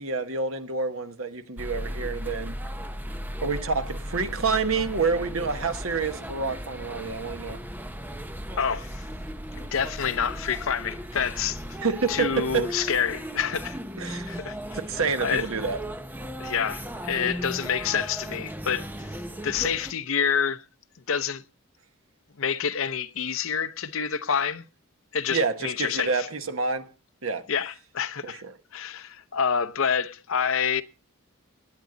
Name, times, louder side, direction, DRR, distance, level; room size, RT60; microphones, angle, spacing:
voice 1, 0.0-2.6 3.4-7.6 11.8-12.7 14.0-14.4 14.7-15.8 25.3-26.9 27.2-27.4 28.2-28.5, right 4 dB, 65° right, 1.2 m, -28 dB
sound 1, 1.6-19.9, equal, 10° right, 0.7 m, -36 dB
voice 2, 8.5-9.0 9.6-11.6 12.1-14.6 15.2-15.4 16.4-18.9 19.4-20.6 21.1-21.4 22.4-24.6 25.1-26.3 27.5-28.4 28.7-30.8, left 7 dB, 65° left, 0.7 m, -27 dB
18.5 x 9.4 x 3.9 m
head